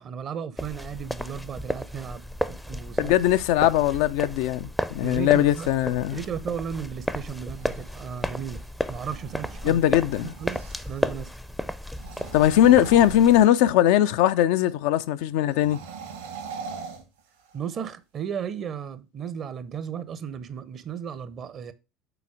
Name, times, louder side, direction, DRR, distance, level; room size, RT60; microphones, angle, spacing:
voice 1, 0.0-3.1 5.0-5.7 6.1-8.6 8.9-9.8 10.2-10.6 10.9-11.3 17.5-21.7, right 7 dB, 40° right, 0.7 m, -35 dB
sound 1, 0.6-13.5, left 1 dB, ahead, 0.5 m, -33 dB
voice 2, 3.0-6.2 9.6-10.3 12.3-15.8, left 12 dB, 60° left, 0.4 m, -20 dB
sound 2, 7.4-11.1 11.9-13.9 15.5-17.8, right 5 dB, 75° right, 1.8 m, -42 dB
6.9 x 4.1 x 4.7 m
figure-of-eight pair, 65°, 0 cm